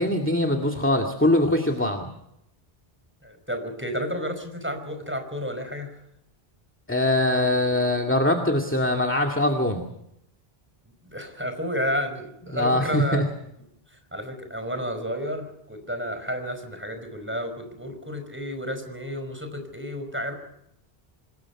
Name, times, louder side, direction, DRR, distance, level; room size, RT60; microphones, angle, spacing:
voice 1, 0.0-2.0 6.9-9.8 12.5-13.2, left 1 dB, 10° left, 2 dB, 2.2 m, -22 dB
voice 2, 3.2-5.9 11.0-13.2 13.9-20.3, equal, 10° right, 6 dB, 5.0 m, -31 dB
26.5 x 20.5 x 5.9 m, 0.78 s
omnidirectional pair, 1.0 m